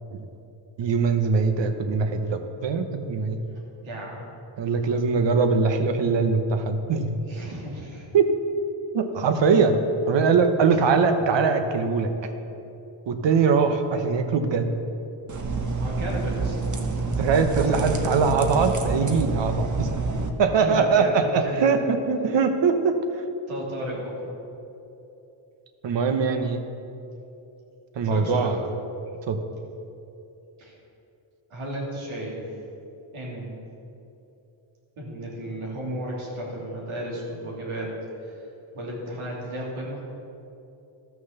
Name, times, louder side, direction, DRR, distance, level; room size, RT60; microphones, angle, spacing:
voice 1, 0.8-3.4 4.6-7.2 8.1-8.3 8.9-9.8 10.1-12.1 13.1-14.7 17.2-19.9 20.4-23.2 25.8-26.6 27.9-28.6 29.3-29.4, right 5 dB, 60° right, 7 dB, 1.2 m, -22 dB
voice 2, 3.8-4.3 7.3-8.1 10.7-10.8 15.8-16.5 17.4-18.1 20.5-21.8 23.5-24.4 28.0-28.6 30.6-30.8 31.5-32.4 33.1-33.6 35.0-37.9 38.2-38.5 38.7-40.0, equal, 85° right, -4 dB, 3.2 m, -34 dB
sound 1, 15.3-20.3, right 3 dB, 40° right, 1.1 m, -27 dB
13.5 x 6.3 x 6.7 m, 2.8 s
cardioid pair, 90°, 48 cm